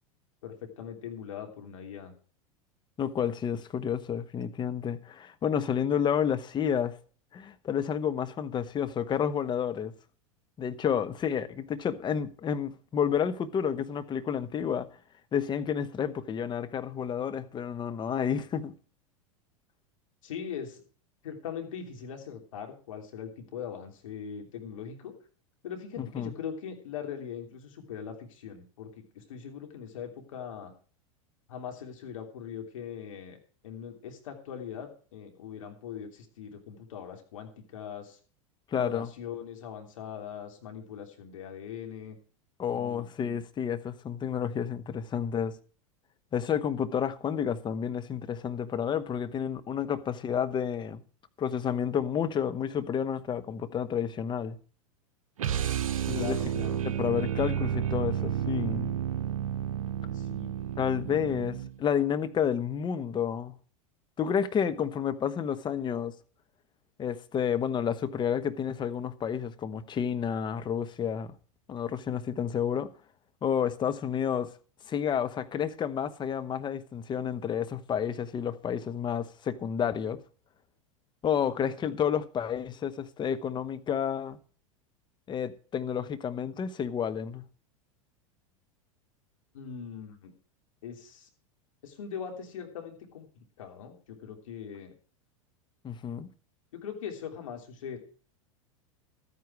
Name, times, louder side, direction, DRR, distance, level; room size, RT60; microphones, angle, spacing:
voice 1, 0.4-2.1 20.2-20.8 21.2-25.1 25.6-30.7 31.5-33.4 33.6-38.2 38.8-42.2 42.7-43.1 56.1-56.9 60.1-60.5 89.5-90.3 90.8-91.3 91.8-94.9 96.7-98.0, left 8 dB, 70° left, 3.2 m, -41 dB
voice 2, 3.0-6.9 7.3-9.9 10.6-14.9 15.3-18.7 26.0-26.3 38.7-39.1 42.6-45.6 46.3-51.0 51.4-54.6 56.1-56.4 56.8-59.0 60.8-63.6 64.2-66.1 67.0-71.3 71.7-72.9 73.4-74.5 74.9-80.2 81.2-84.4 85.3-87.4 95.8-96.3, left 8 dB, 25° left, 1.1 m, -30 dB
sound 1, 55.4-61.8, right 9 dB, 75° right, 0.7 m, -31 dB
13.0 x 9.4 x 4.7 m
hypercardioid pair, 95°, 17 cm